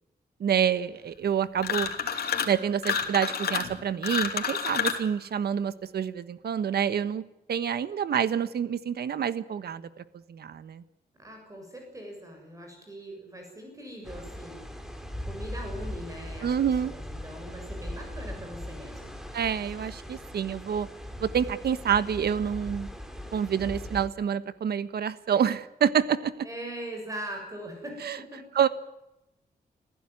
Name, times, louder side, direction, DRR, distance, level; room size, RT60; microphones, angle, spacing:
voice 1, 0.4-1.9 2.5-7.2 7.5-9.9 10.3-10.8 16.4-16.9 19.3-20.9 21.2-22.9 23.3-26.4 28.0-28.2 28.5-28.7, right 8 dB, 80° right, 14 dB, 1.3 m, -27 dB
sound 1, 1.6-2.6 2.8-5.1, left 7 dB, 75° left, 3.0 m, -29 dB
voice 2, 11.2-14.6 15.2-16.5 16.8-19.2 26.4-28.5, right 1 dB, 20° right, 2 dB, 6.9 m, -41 dB
sound 2, 14.0-24.1, left 1 dB, 5° right, 3.0 m, -39 dB
27.0 x 15.5 x 9.8 m, 0.90 s
wide cardioid pair, 150°, 16 cm